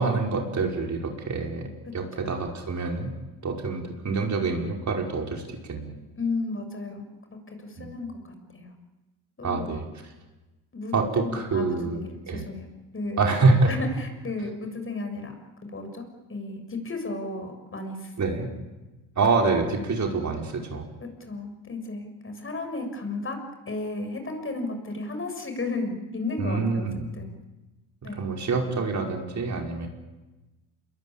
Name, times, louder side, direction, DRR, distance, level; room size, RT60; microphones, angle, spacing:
voice 1, 0.0-3.1 3.4-6.0 7.8-7.9 9.4-9.9 10.9-12.4 13.2-13.7 18.2-18.5 19.2-20.9 26.4-27.1 28.0-29.9, right 3 dB, 40° right, 2 dB, 5.5 m, -26 dB
voice 2, 1.9-2.3 6.2-8.7 9.4-9.7 10.7-11.7 11.9-12.7 12.9-13.2 13.7-15.4 15.7-18.4 21.0-23.4 23.7-26.8 27.2-27.3 28.0-28.3, left 2 dB, 30° left, 6 dB, 7.2 m, -34 dB
27.5 x 22.5 x 8.8 m, 1.1 s
supercardioid pair, 70°, 41 cm